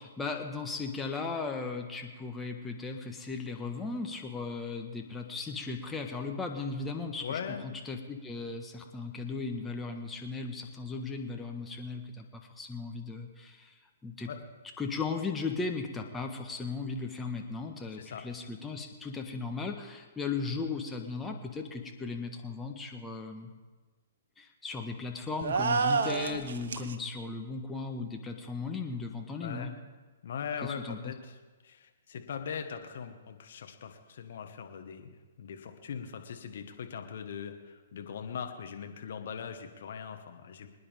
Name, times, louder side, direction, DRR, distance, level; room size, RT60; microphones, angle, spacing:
voice 1, 0.0-13.8 14.0-14.3 14.8-23.5 24.4-29.7 30.6-31.1, left 4 dB, 10° left, 3 dB, 1.5 m, -37 dB
voice 2, 7.2-7.6 14.3-14.4 18.0-18.2 29.4-29.8 30.2-31.4 31.6-40.7, left 7 dB, 60° left, 6 dB, 1.6 m, -40 dB
sound 1, 25.4-26.9, right 4 dB, 65° right, 1.1 m, -29 dB
25.0 x 9.9 x 3.6 m, 1.3 s
figure-of-eight pair, 120°, 0 cm